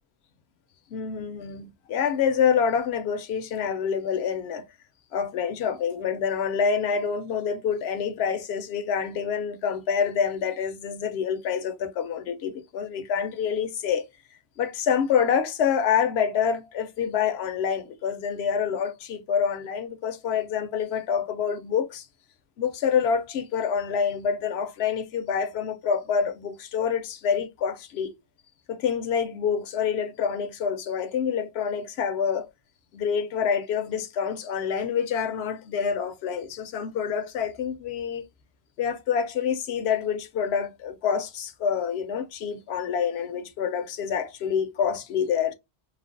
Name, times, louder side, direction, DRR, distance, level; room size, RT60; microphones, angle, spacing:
voice 1, 0.9-4.6 5.1-14.0 14.6-22.1 22.6-28.1 28.7-32.5 32.9-38.2 38.8-45.5, left 7 dB, 85° left, 0.8 m, -27 dB
3.2 x 2.0 x 2.5 m
omnidirectional pair, 1.1 m